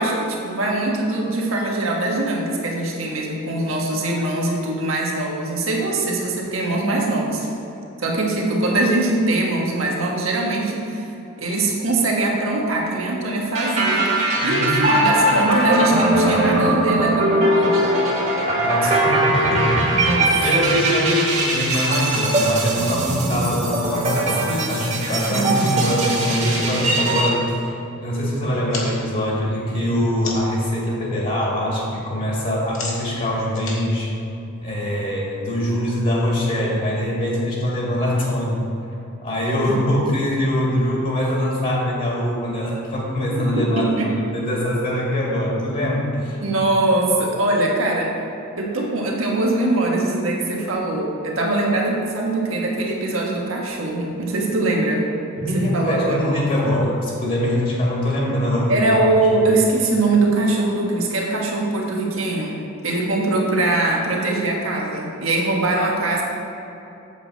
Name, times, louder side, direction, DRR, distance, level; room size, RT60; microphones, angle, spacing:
voice 1, 0.0-7.4 8.0-11.1 11.4-17.8 18.8-18.9 19.9-20.3 24.4-26.0 43.6-44.1 46.4-48.1 48.6-55.1 55.5-56.2 58.7-66.2, right 2 dB, 85° right, -2 dB, 1.5 m, -22 dB
sound 1, 13.5-27.3, right 1 dB, 35° right, 1.5 m, -20 dB
voice 2, 14.4-14.9 18.5-27.7 28.0-34.1 34.6-38.6 39.2-46.4 55.4-58.9, left 1 dB, 40° left, -4 dB, 1.9 m, -23 dB
sound 2, 28.7-30.6 31.0-31.5 31.7-35.0, left 3 dB, 80° left, 1.6 m, -36 dB
8.1 x 7.4 x 4.1 m, 2.9 s
head